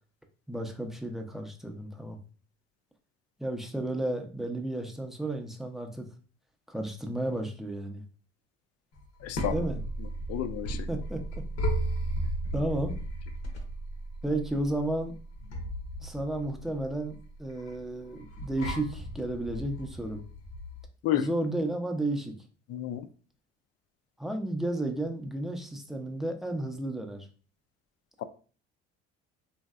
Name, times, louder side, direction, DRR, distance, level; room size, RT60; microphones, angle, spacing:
voice 1, 0.5-2.2 3.4-6.1 6.7-8.0 9.5-9.8 10.9-11.4 12.5-13.0 14.2-15.1 16.0-20.2 21.1-22.3 24.2-27.3, right 1 dB, ahead, 0.6 m, -32 dB
sound 1, 9.0-20.8, right 1 dB, 80° left, 0.9 m, -35 dB
voice 2, 9.2-9.5 10.3-10.9 21.0-21.3 22.7-23.0, left 11 dB, 55° left, 0.5 m, -30 dB
3.0 x 2.7 x 2.3 m
supercardioid pair, 70°, 31 cm